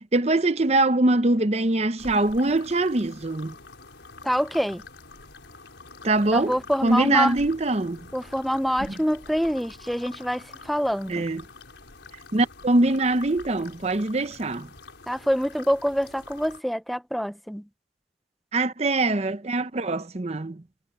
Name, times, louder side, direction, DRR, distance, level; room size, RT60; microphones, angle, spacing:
voice 1, 0.0-3.6 6.0-8.0 11.1-11.4 12.3-14.7 18.5-20.6, right 2 dB, 35° right, 0.7 m, -23 dB
sound 1, 2.0-16.6, left 3 dB, 80° left, 4.7 m, -46 dB
voice 2, 4.2-4.8 6.3-7.4 8.1-11.2 15.1-17.6, equal, ahead, 0.5 m, -26 dB
head